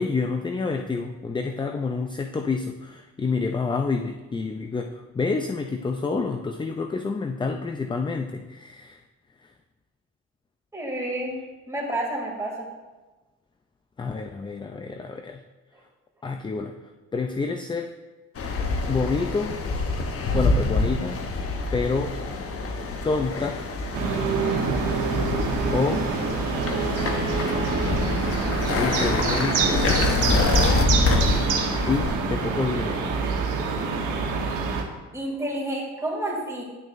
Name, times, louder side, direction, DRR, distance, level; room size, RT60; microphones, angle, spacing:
voice 1, 0.0-9.0 14.0-15.4 16.2-16.7 17.1-17.9 18.9-19.6 20.3-21.2 21.7-22.2 23.0-23.6 25.7-26.0 28.8-29.8 31.9-33.1, left 4 dB, 15° left, 5 dB, 0.4 m, -28 dB
voice 2, 10.7-11.3 11.7-12.7 35.1-36.6, right 1 dB, 10° right, -3 dB, 2.6 m, -29 dB
sound 1, 18.4-32.1, left 3 dB, 50° left, 1.0 m, -26 dB
sound 2, 23.9-34.8, right 4 dB, 85° right, 1.1 m, -26 dB
10.5 x 6.2 x 2.6 m, 1.2 s
cardioid pair, 90°, 30 cm